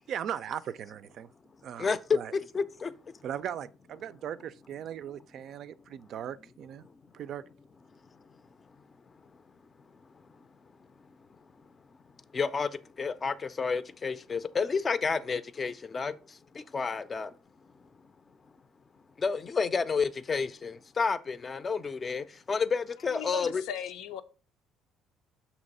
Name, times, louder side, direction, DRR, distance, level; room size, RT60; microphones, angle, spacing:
voice 1, 0.1-1.3 1.6-2.3 3.2-6.8 7.1-7.4, right 9 dB, 60° right, 0.4 m, -38 dB
voice 2, 1.8-2.9 12.3-12.7 13.0-16.1 16.5-17.3 19.2-23.6, left 5 dB, 30° left, 0.4 m, -30 dB
voice 3, 23.1-24.2, left 8 dB, 90° left, 0.5 m, -37 dB
6.3 x 2.9 x 5.3 m
cardioid pair, 110°, 0 cm